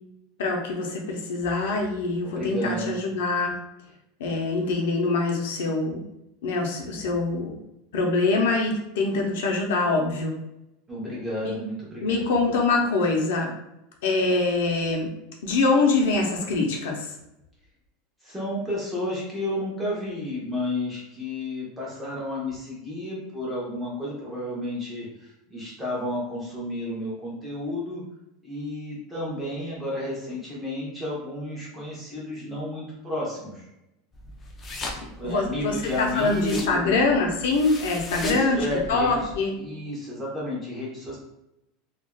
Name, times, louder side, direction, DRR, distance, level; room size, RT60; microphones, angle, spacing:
voice 1, 0.4-3.5 4.2-6.0 6.4-7.5 7.9-10.3 11.4-11.5 12.0-13.5 14.0-15.1 15.4-17.1 35.2-38.6 38.9-39.6, left 3 dB, 85° left, 0 dB, 0.6 m, -24 dB
voice 2, 2.2-3.0 10.9-12.3 18.2-28.0 28.4-33.7 35.2-37.0 38.1-39.3 39.6-41.2, left 1 dB, 5° right, -6 dB, 0.7 m, -32 dB
sound 1, 34.1-39.4, left 2 dB, 15° left, 0.3 m, -39 dB
3.3 x 2.4 x 2.2 m, 0.87 s
supercardioid pair, 180°, 0 cm